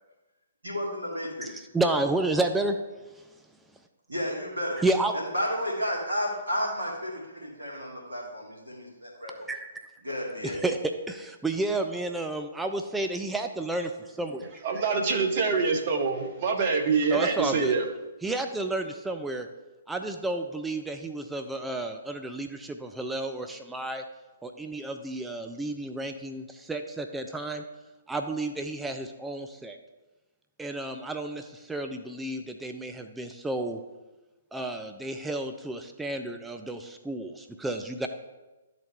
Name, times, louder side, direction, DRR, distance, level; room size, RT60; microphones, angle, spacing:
voice 1, 0.6-1.5 4.1-4.8 5.1-9.4 10.0-10.6, equal, 80° right, -3 dB, 2.2 m, -32 dB
voice 2, 1.4-2.8 3.1-3.3 4.8-5.2 9.5-9.7 10.4-14.5 17.1-17.7 18.2-19.5 19.9-24.0 24.4-27.6 28.1-29.8 30.6-33.8 34.5-38.1, right 2 dB, 5° right, 5 dB, 0.4 m, -31 dB
voice 3, 14.6-17.8, right 4 dB, 40° right, 4 dB, 1.0 m, -25 dB
11.5 x 4.1 x 3.5 m, 1.1 s
figure-of-eight pair, 125°, 0 cm